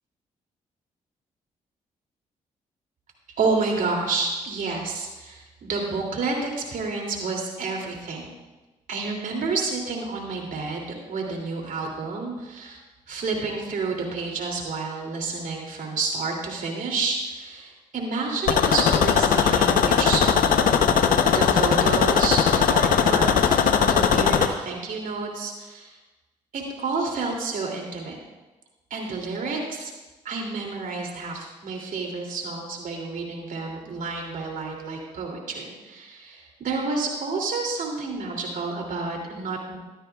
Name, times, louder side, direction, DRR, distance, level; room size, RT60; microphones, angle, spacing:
voice 1, 3.4-8.3 8.9-12.8 13.1-20.5 21.3-25.9 26.5-28.2 28.9-29.9 30.2-39.8, right 4 dB, 65° right, 0 dB, 2.8 m, -29 dB
sound 1, 18.5-24.5, left 7 dB, 70° left, 0.8 m, -19 dB
15.0 x 12.5 x 2.4 m, 1.1 s
supercardioid pair, 50°, 15 cm